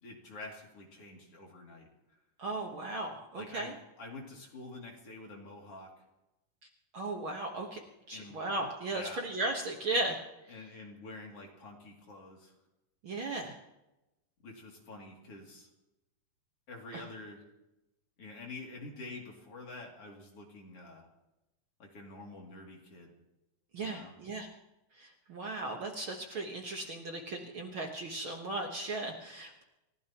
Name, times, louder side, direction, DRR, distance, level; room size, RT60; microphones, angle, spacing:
voice 1, 0.0-1.9 3.4-5.9 8.1-8.4 8.9-9.3 10.5-12.5 14.4-15.7 16.7-17.4 18.2-21.1 21.8-23.1 23.8-24.1, left 2 dB, 50° left, -1 dB, 3.7 m, -47 dB
voice 2, 2.4-3.7 6.9-7.8 8.1-10.2 13.0-13.6 16.9-17.0 23.7-24.5 25.0-29.6, right 2 dB, 50° right, 1 dB, 1.9 m, -36 dB
30.0 x 15.5 x 3.0 m, 0.96 s
omnidirectional pair, 3.4 m